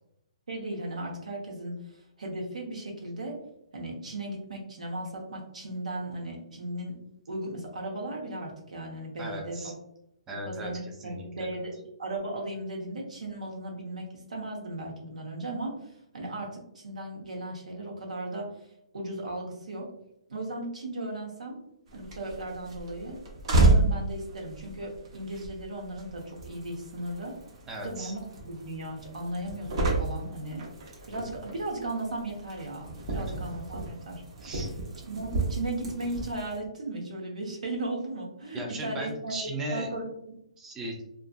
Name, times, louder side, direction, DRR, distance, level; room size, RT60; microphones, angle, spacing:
voice 1, 0.5-3.4 3.7-7.0 7.3-9.7 10.4-11.7 12.0-18.6 18.9-19.9 20.3-21.6 21.9-23.2 23.6-27.3 27.7-30.6 31.1-34.2 35.0-39.4 39.7-40.4, right 1 dB, 80° right, 0 dB, 0.9 m, -36 dB
voice 2, 9.2-9.7 10.3-11.2 27.7-28.1 33.1-33.2 34.4-34.7 38.5-39.9 40.6-41.0, right 1 dB, 10° right, 0 dB, 0.4 m, -37 dB
sound 1, 21.9-36.6, right 2 dB, 50° right, 0.8 m, -31 dB
2.6 x 2.4 x 2.3 m, 0.77 s
hypercardioid pair, 150°, 4 cm